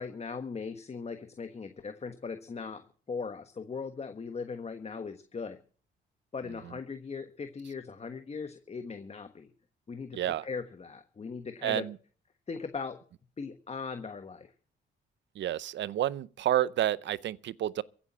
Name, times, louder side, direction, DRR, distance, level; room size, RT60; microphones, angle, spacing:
voice 1, 0.0-5.6 6.3-9.5 9.9-11.9 12.5-13.0 13.4-14.5, left 5 dB, 30° left, 1.3 m, -39 dB
voice 2, 10.1-10.5 11.6-12.0 15.4-17.8, right 12 dB, 65° right, 0.7 m, -30 dB
15.5 x 8.7 x 7.3 m
cardioid pair, 90°, 20 cm